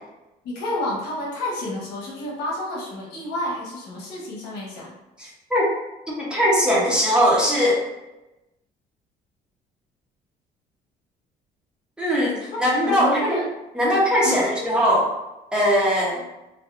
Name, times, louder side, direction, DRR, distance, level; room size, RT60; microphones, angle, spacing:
voice 1, 0.4-4.9 12.5-13.4 14.2-14.6, left 1 dB, 90° left, -5 dB, 1.0 m, -30 dB
voice 2, 5.2-5.6 6.1-7.8 12.0-13.4 13.8-15.1 15.5-16.2, equal, 5° right, -6 dB, 0.9 m, -20 dB
2.6 x 2.2 x 2.4 m, 0.98 s
cardioid pair, 110°, 17 cm